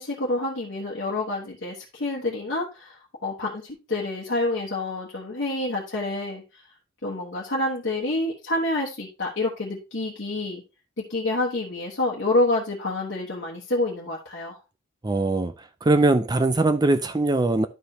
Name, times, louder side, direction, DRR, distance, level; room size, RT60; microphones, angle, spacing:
voice 1, 0.0-6.7 7.0-10.6 11.0-14.6, left 2 dB, 55° left, 1.2 m, -28 dB
voice 2, 15.0-15.5 15.8-17.7, right 2 dB, 20° right, 0.4 m, -21 dB
11.5 x 5.0 x 2.8 m
head